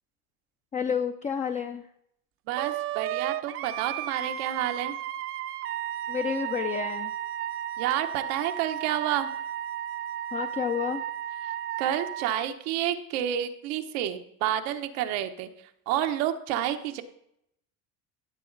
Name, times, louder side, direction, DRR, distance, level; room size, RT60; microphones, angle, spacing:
voice 1, 0.7-1.9 6.1-7.1 10.3-11.0, left 7 dB, 20° left, 6 dB, 0.5 m, -30 dB
voice 2, 2.5-4.9 7.8-9.3 11.4-11.5 11.8-15.5 15.9-17.0, right 11 dB, 85° right, 7 dB, 1.1 m, -29 dB
Wind instrument woodwind instrument, 2.6-12.4, right 12 dB, 40° right, 0.6 m, -34 dB
15.0 x 7.8 x 4.0 m, 0.75 s
cardioid pair, 140°, 35 cm